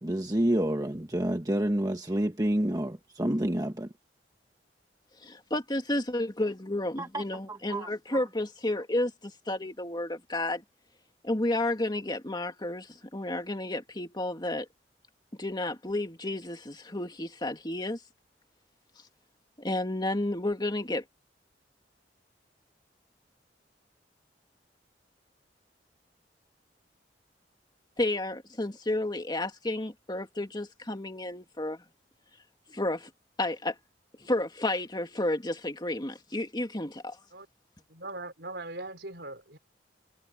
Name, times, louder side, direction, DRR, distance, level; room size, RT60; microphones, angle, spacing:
voice 1, 0.0-3.9 7.0-7.2 7.5-8.2, right 1 dB, 20° right, 1.3 m, -29 dB
voice 2, 5.2-10.6 11.2-14.7 15.4-18.0 19.6-21.0 28.0-31.8 32.7-33.1 33.4-33.8 34.2-37.2, left 1 dB, 25° left, 2.4 m, -31 dB
voice 3, 37.9-39.6, right 2 dB, 70° right, 5.1 m, -40 dB
head